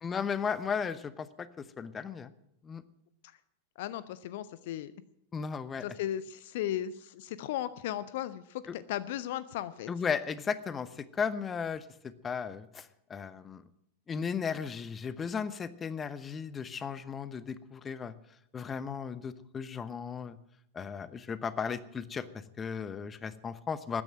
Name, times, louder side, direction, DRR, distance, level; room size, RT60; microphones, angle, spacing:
voice 1, 0.0-2.3 2.6-2.8 5.3-5.8 8.7-8.8 9.9-11.9 12.2-13.6 14.1-18.1 18.5-20.4 20.7-22.3 22.6-24.0, left 6 dB, 20° left, 16 dB, 0.8 m, -35 dB
voice 2, 3.8-4.9 5.8-9.9, left 12 dB, 50° left, 16 dB, 0.6 m, -36 dB
13.5 x 10.0 x 9.1 m, 0.75 s
figure-of-eight pair, 90°, 0 cm